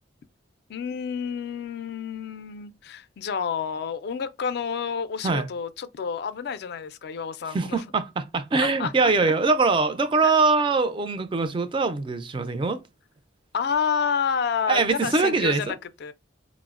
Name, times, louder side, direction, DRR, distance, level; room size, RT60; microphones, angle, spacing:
voice 1, 0.7-7.8 8.6-9.3 10.2-10.3 13.5-16.1, left 6 dB, 55° left, 0.3 m, -29 dB
voice 2, 7.5-12.8 14.7-15.8, right 4 dB, 25° right, 0.3 m, -23 dB
4.4 x 2.0 x 2.4 m
head